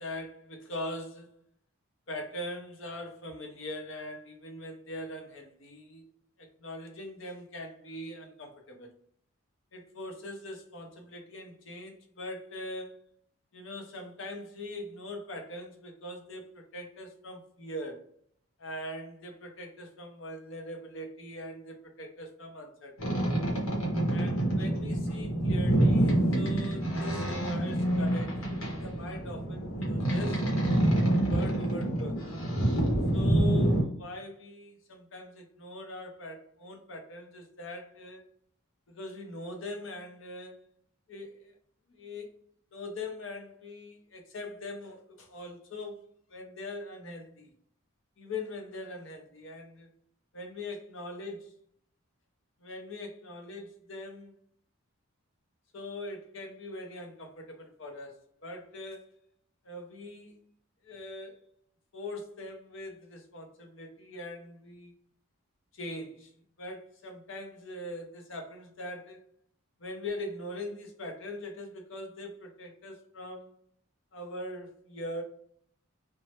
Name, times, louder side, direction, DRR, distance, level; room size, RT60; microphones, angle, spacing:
voice 1, 0.0-1.4 2.1-6.1 6.4-8.9 9.7-13.0 13.5-18.0 18.6-23.4 24.1-30.4 31.0-32.3 33.1-38.2 38.9-40.6 41.1-41.5 41.9-42.3 42.7-47.5 48.2-49.9 50.3-51.5 52.6-54.4 55.7-59.1 59.6-60.4 60.8-61.4 61.9-64.9 65.7-66.3 66.6-69.2 69.8-73.6 74.1-75.2, left 1 dB, 60° left, 0.7 m, -42 dB
Boat Water vehicle, 23.0-33.8, right 1 dB, 80° left, 1.0 m, -27 dB
3.0 x 2.2 x 2.8 m
head